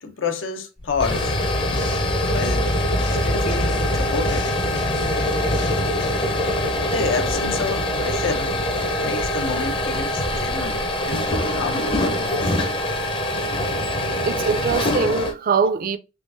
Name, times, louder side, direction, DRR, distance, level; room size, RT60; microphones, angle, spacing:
voice 1, 0.0-1.4 2.3-2.7 3.2-4.6 6.7-8.6 9.0-12.0, left 4 dB, 80° left, 0.7 m, -29 dB
sound 1, 0.8-15.3, left 1 dB, 25° left, 0.6 m, -23 dB
sound 2, 1.1-2.1 2.4-6.1, left 3 dB, 65° left, 1.0 m, -36 dB
voice 2, 14.3-16.0, right 5 dB, 45° right, 0.4 m, -22 dB
3.6 x 3.4 x 2.4 m
head